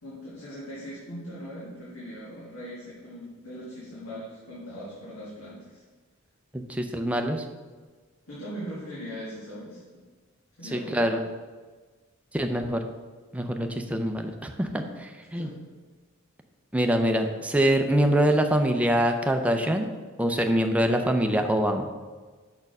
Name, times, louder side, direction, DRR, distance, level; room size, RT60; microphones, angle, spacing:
voice 1, 0.0-5.8 8.3-10.0 10.6-11.0 15.3-15.5, equal, 85° left, -8 dB, 1.9 m, -40 dB
voice 2, 6.5-7.4 10.7-11.2 12.3-12.8 13.3-15.5 16.7-19.9 20.2-21.9, equal, 5° right, 4 dB, 0.5 m, -24 dB
6.0 x 4.5 x 5.3 m, 1.4 s
head